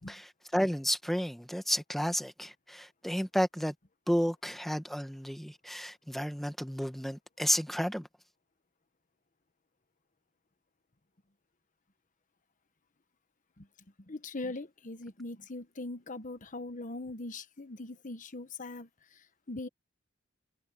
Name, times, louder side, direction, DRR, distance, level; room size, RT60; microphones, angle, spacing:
voice 1, 0.1-3.7 4.1-8.1, equal, ahead, 1.5 m, -32 dB
voice 2, 14.1-18.9 19.5-19.7, left 2 dB, 40° left, 1.2 m, -41 dB
head